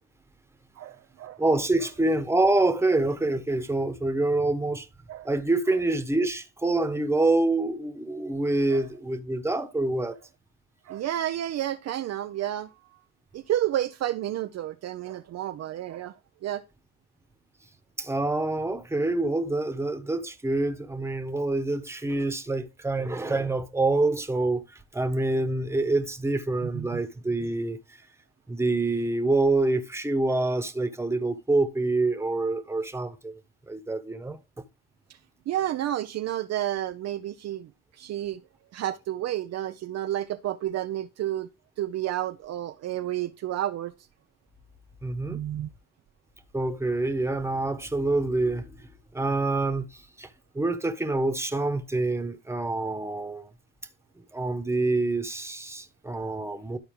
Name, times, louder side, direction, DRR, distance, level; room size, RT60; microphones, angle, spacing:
voice 1, 0.8-1.4 5.1-5.3 10.9-12.7 13.3-16.1 16.4-16.6 26.7-26.9 35.5-37.7 38.0-38.4 38.7-41.5 41.8-43.9 45.3-45.7, right 12 dB, 50° right, 0.6 m, -30 dB
voice 2, 1.4-4.9 5.2-10.2 18.0-28.0 28.5-33.4 33.7-34.6 45.0-45.4 46.5-48.9 49.1-50.3 50.5-53.5 54.3-56.8, right 2 dB, 10° right, 1.3 m, -26 dB
12.5 x 4.3 x 3.7 m
supercardioid pair, 75°, 33 cm